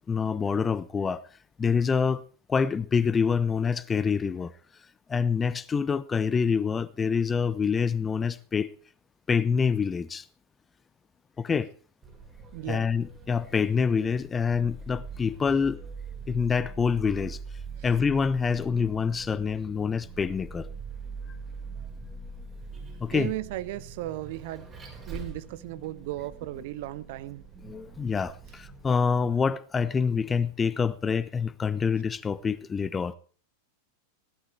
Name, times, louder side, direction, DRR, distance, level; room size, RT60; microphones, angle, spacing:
voice 1, 0.1-1.2 1.6-2.2 2.5-4.5 5.1-8.7 9.3-10.2 11.4-11.7 12.7-15.8 16.3-17.4 17.8-20.7 23.0-23.3 27.6-33.1, left 6 dB, 15° left, 0.7 m, -26 dB
Vehicle, 12.0-29.0, right 4 dB, 20° right, 6.1 m, -43 dB
voice 2, 12.5-12.9 23.1-24.7 25.1-27.4, right 15 dB, 50° right, 0.9 m, -35 dB
17.5 x 12.0 x 4.6 m
figure-of-eight pair, 90°, 0 cm